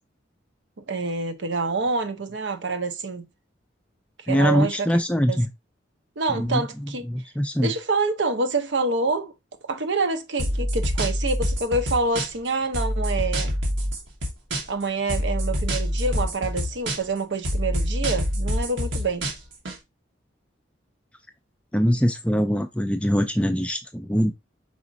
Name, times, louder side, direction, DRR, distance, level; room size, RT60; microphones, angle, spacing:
voice 1, 0.8-3.3 4.3-4.9 5.3-5.4 6.2-7.0 7.6-9.3 9.7-13.5 14.7-19.3, right 3 dB, 70° right, 0.7 m, -26 dB
voice 2, 4.3-5.5 6.3-7.7 21.7-24.3, equal, 5° left, 0.4 m, -23 dB
sound 1, 10.4-12.5 12.7-14.8 15.1-17.2 17.4-19.8, equal, 85° right, 1.3 m, -26 dB
4.9 x 4.1 x 2.6 m
head